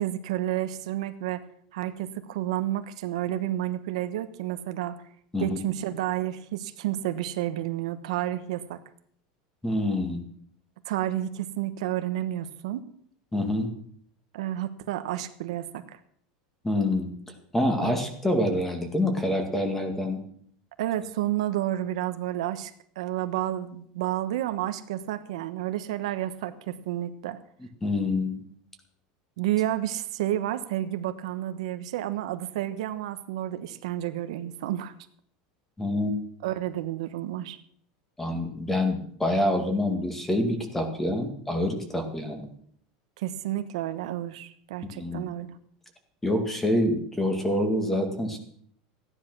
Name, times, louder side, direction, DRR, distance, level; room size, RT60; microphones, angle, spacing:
voice 1, 0.0-1.4 1.7-5.0 5.4-8.8 10.8-12.9 14.3-16.0 17.8-18.0 20.8-27.4 29.4-34.9 36.4-37.6 43.2-45.6, right 13 dB, 80° right, 9 dB, 1.2 m, -30 dB
voice 2, 9.6-10.2 13.3-13.7 16.6-17.1 17.5-20.2 27.8-28.4 35.8-36.1 38.2-42.5 44.9-45.2 46.2-48.4, left 1 dB, 10° left, 5 dB, 2.1 m, -26 dB
15.0 x 10.0 x 6.2 m, 0.63 s
supercardioid pair, 155°, 3 cm